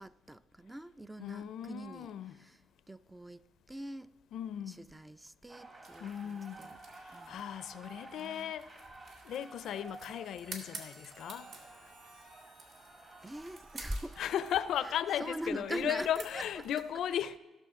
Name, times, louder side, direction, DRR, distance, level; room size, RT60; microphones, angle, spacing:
voice 1, 0.0-2.6 2.9-3.4 3.7-4.1 4.7-6.8 7.1-7.4 8.2-8.5 13.2-14.2 14.8-14.9 15.2-16.4, right 1 dB, 10° right, 0.3 m, -42 dB
voice 2, 1.2-2.3 4.3-4.8 6.0-6.7 7.0-8.8 9.2-11.5 11.8-11.9 14.2-17.4, left 10 dB, 70° left, 0.4 m, -36 dB
sound 1, 5.5-16.7, right 2 dB, 35° right, 1.6 m, -54 dB
sound 2, 5.8-16.8, right 3 dB, 65° right, 2.1 m, -53 dB
Harmonica, 10.2-15.4, right 3 dB, 85° right, 3.6 m, -62 dB
16.5 x 6.6 x 3.7 m
cardioid pair, 85°, 0 cm